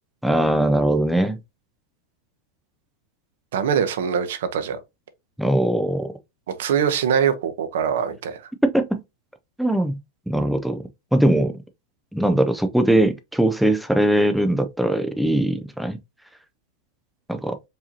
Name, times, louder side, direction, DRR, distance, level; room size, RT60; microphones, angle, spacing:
voice 1, 0.2-1.4 5.4-6.1 8.6-9.0 9.6-10.0 10.3-10.8 11.1-11.6 12.1-16.0 17.3-17.6, right 1 dB, ahead, 0.3 m, -20 dB
voice 2, 3.5-4.8 6.6-8.4, right 7 dB, 80° right, 0.7 m, -23 dB
4.8 x 2.7 x 2.7 m
supercardioid pair, 160°, 0 cm